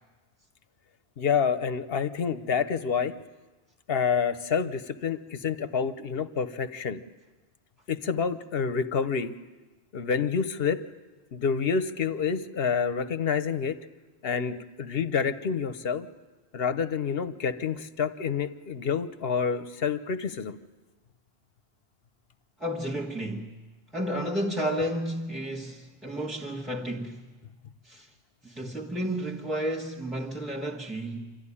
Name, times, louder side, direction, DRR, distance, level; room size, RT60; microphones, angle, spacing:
voice 1, 1.2-3.1 3.9-7.0 7.9-9.3 9.9-10.8 11.3-13.8 14.2-16.1 16.5-20.6, left 6 dB, 60° left, 1.1 m, -28 dB
voice 2, 22.6-23.5 23.9-27.3 27.8-28.1 28.4-31.4, equal, ahead, 1.5 m, -32 dB
26.0 x 14.0 x 9.9 m
omnidirectional pair, 1.1 m